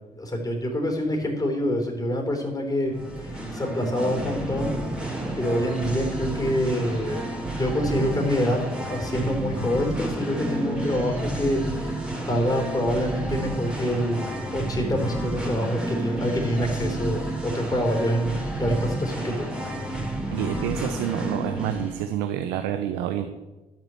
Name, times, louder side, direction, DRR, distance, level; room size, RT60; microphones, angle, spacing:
voice 1, 0.2-4.8 5.4-7.2 7.5-8.6 8.9-12.0 12.3-14.2 14.5-19.5, equal, 20° left, 2 dB, 3.8 m, -26 dB
Singing, 2.9-22.0, right 1 dB, 5° right, 3.6 m, -30 dB
voice 2, 20.3-23.3, right 10 dB, 80° right, 8 dB, 0.7 m, -28 dB
12.0 x 6.1 x 7.6 m, 1.1 s
hypercardioid pair, 50°, 18 cm